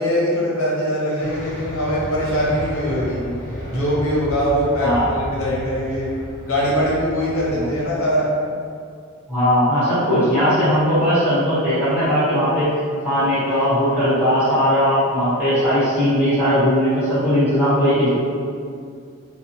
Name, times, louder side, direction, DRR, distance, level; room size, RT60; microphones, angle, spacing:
voice 1, 0.0-3.2 3.6-6.1 6.4-8.3, equal, 80° left, -6 dB, 0.8 m, -22 dB
sound 1, 1.2-7.9, equal, 35° left, 0.5 m, -33 dB
voice 2, 9.3-12.7 13.0-18.1, equal, 10° right, -15 dB, 1.1 m, -18 dB
2.7 x 2.1 x 2.6 m, 2.3 s
head